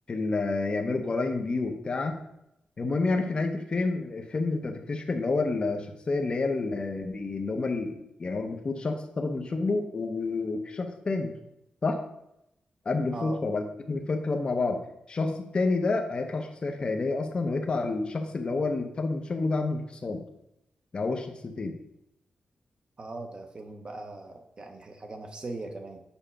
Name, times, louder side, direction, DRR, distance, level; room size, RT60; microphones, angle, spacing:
voice 1, 0.1-2.2 2.8-11.3 11.8-12.0 12.8-14.8 15.1-20.2 20.9-21.8, left 3 dB, 35° left, 4 dB, 0.8 m, -29 dB
voice 2, 23.0-26.0, right 2 dB, 30° right, 5 dB, 0.8 m, -40 dB
7.1 x 5.1 x 5.6 m, 0.84 s
wide cardioid pair, 160°, 3 cm